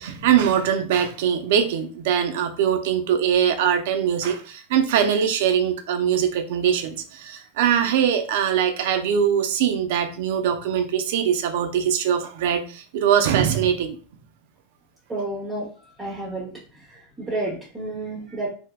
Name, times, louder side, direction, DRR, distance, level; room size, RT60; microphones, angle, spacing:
voice 1, 0.0-14.0, right 8 dB, 70° right, 7 dB, 0.5 m, -22 dB
voice 2, 15.1-16.5 16.9-18.5, right 2 dB, 15° right, -5 dB, 0.8 m, -31 dB
3.4 x 2.7 x 2.2 m, 0.38 s
supercardioid pair, 150°, 0 cm